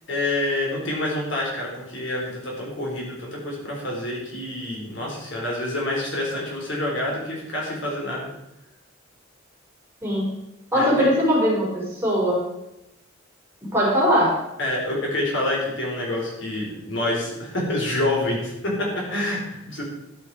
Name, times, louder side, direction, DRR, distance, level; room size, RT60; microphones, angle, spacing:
voice 1, 0.1-8.3 10.7-11.1 14.6-19.8, left 1 dB, 60° left, -2 dB, 4.0 m, -27 dB
voice 2, 10.7-12.5 13.7-14.4, equal, 10° right, -6 dB, 4.6 m, -20 dB
12.5 x 9.8 x 4.8 m, 0.89 s
head